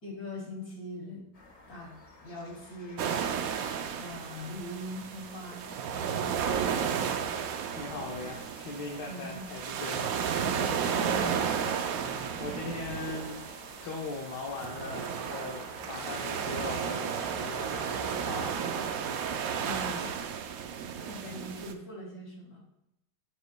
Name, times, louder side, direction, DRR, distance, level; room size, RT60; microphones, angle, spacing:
voice 1, 0.0-1.3 1.7-1.9 2.2-3.2 3.9-7.3 9.0-9.5 10.4-11.5 19.6-20.1 20.5-20.6 21.1-22.6, left 1 dB, 50° left, -3 dB, 3.3 m, -42 dB
sound 1, 1.3-20.3, left 2 dB, 30° left, 0.6 m, -51 dB
sound 2, 3.0-21.7, right 7 dB, 70° right, 0.8 m, -33 dB
voice 2, 7.7-10.1 11.9-13.4 13.8-18.6 21.0-21.4, left 3 dB, 65° left, -1 dB, 1.5 m, -40 dB
9.9 x 7.3 x 2.3 m, 0.83 s
omnidirectional pair, 2.1 m